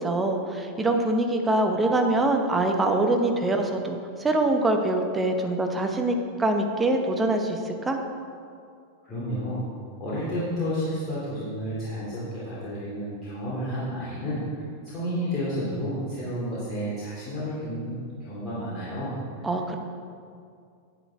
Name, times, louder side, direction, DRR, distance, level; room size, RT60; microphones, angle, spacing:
voice 1, 0.0-8.0 19.4-19.8, right 2 dB, 15° right, 4 dB, 0.9 m, -24 dB
voice 2, 9.0-9.6 10.0-14.4 14.8-19.4, equal, 25° left, -9 dB, 2.5 m, -31 dB
10.0 x 8.4 x 3.4 m, 2.3 s
figure-of-eight pair, 90°, 0 cm